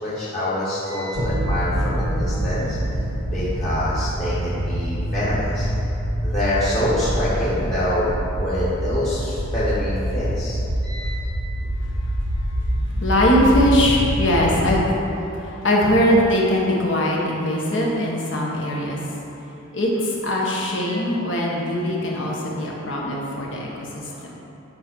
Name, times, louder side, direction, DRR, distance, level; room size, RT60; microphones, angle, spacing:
voice 1, 0.0-3.0 3.3-5.7 6.2-11.2 20.8-20.9, left 1 dB, 35° left, -11 dB, 1.6 m, -26 dB
sound 1, 1.1-14.7, right 1 dB, 90° right, 1.2 m, -25 dB
voice 2, 11.8-12.1 12.8-15.0 15.3-19.1 19.5-24.3, equal, 65° left, -3 dB, 1.6 m, -21 dB
9.6 x 5.6 x 4.7 m, 3.0 s
head